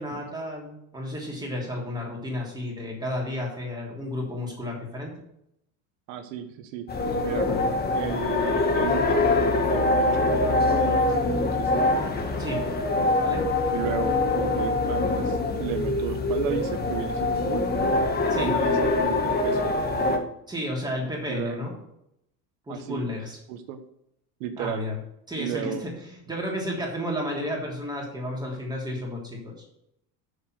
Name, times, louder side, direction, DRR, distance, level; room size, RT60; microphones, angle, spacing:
voice 1, 0.0-5.1 7.4-7.6 12.4-12.6 13.2-13.5 18.3-18.6 20.5-21.7 22.7-23.4 24.6-24.9 25.3-29.5, left 1 dB, 10° right, -2 dB, 3.3 m, -32 dB
voice 2, 6.1-6.8 7.2-7.5 7.9-11.7 13.7-14.2 14.5-17.7 18.4-19.7 21.3-21.6 22.7-23.0 23.5-23.8 24.4-24.8 25.4-25.8, right 10 dB, 90° right, 7 dB, 1.3 m, -34 dB
sound 1, 6.9-20.2, left 2 dB, 25° left, 1.6 m, -24 dB
7.4 x 7.3 x 6.4 m, 0.78 s
cardioid pair, 135°, 39 cm